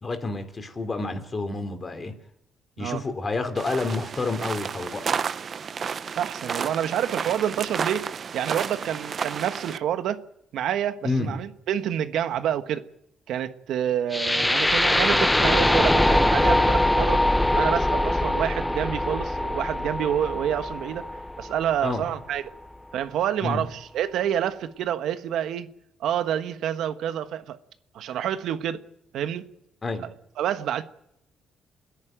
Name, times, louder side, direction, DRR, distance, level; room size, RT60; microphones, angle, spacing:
voice 1, 0.0-2.1 2.8-5.0 11.0-11.4 21.8-22.1 23.4-23.7 29.8-30.1, left 3 dB, 30° left, 3.4 m, -29 dB
sound 1, 3.6-9.8, right 6 dB, 50° right, 0.8 m, -31 dB
voice 2, 6.2-10.2 10.5-12.8 13.3-17.2 17.5-21.0 21.4-22.4 22.9-25.7 26.0-27.6 27.9-28.8 29.1-29.5 30.0-30.1 30.4-30.8, right 10 dB, 80° right, 1.3 m, -28 dB
sound 2, 14.1-22.1, left 1 dB, 10° left, 0.8 m, -22 dB
30.0 x 10.5 x 9.2 m
cardioid pair, 90°, 0 cm